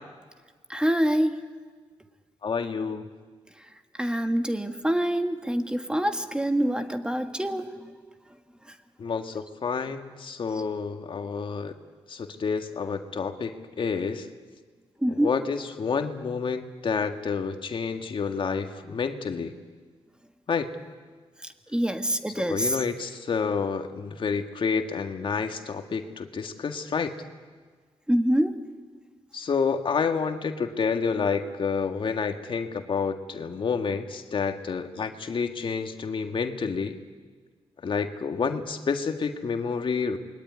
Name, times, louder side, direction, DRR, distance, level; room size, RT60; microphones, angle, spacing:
voice 1, 0.7-1.4 4.0-7.9 15.0-15.3 21.7-22.8 28.1-28.5, equal, 10° right, 7 dB, 1.7 m, -25 dB
voice 2, 2.4-3.1 9.0-11.7 12.1-14.3 15.2-19.5 20.5-20.7 22.4-27.1 29.3-37.0 37.8-40.2, left 5 dB, 55° left, 6 dB, 1.9 m, -29 dB
28.0 x 22.0 x 9.7 m, 1.5 s
cardioid pair, 90°, 11 cm